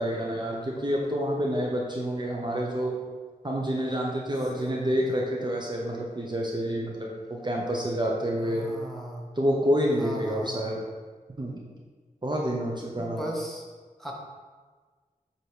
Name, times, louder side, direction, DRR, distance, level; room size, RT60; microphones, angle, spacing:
voice 1, 0.0-3.0 3.4-8.7 9.4-10.8 11.4-11.7 12.2-13.2, equal, 30° right, -2 dB, 0.8 m, -28 dB
voice 2, 8.4-9.3 10.0-10.7 12.9-13.6 14.0-14.1, equal, ahead, -2 dB, 1.1 m, -37 dB
7.8 x 2.9 x 4.9 m, 1.4 s
wide cardioid pair, 80°, 15 cm